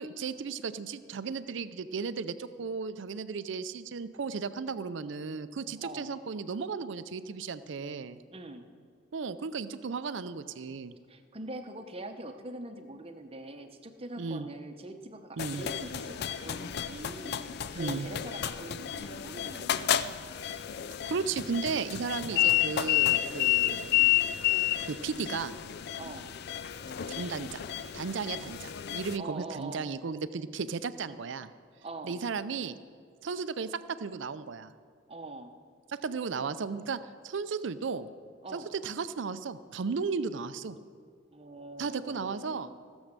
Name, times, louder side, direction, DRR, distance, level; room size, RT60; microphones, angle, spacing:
voice 1, 0.0-8.2 9.1-10.9 14.2-14.5 15.4-15.6 17.8-18.1 21.1-24.0 24.9-25.6 27.1-27.7 27.9-31.5 32.0-32.8 33.2-34.7 35.9-38.1 38.5-40.8 41.8-42.7, right 5 dB, 65° right, 13 dB, 0.5 m, -35 dB
voice 2, 5.8-6.1 8.3-8.6 11.1-20.1 22.3-22.7 25.9-26.3 29.2-29.9 31.8-32.2 35.1-35.5 38.4-38.7 41.3-42.8, right 2 dB, 30° right, 7 dB, 0.8 m, -43 dB
sound 1, 15.4-29.2, left 12 dB, 55° left, 0.4 m, -31 dB
16.0 x 7.2 x 6.6 m, 2.1 s
head